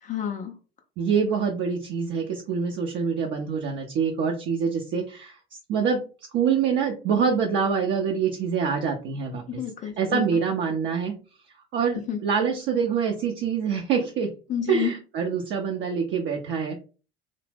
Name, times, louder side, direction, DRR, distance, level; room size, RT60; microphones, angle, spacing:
voice 1, 0.0-0.6 9.5-10.2 12.1-12.2 14.5-15.0, left 9 dB, 25° left, 5 dB, 0.4 m, -29 dB
voice 2, 1.0-5.4 5.7-6.0 6.3-9.4 10.0-11.2 11.7-14.3 14.7-16.8, right 6 dB, 40° right, 2 dB, 0.5 m, -25 dB
2.7 x 2.0 x 3.2 m, 0.35 s
figure-of-eight pair, 60°, 30 cm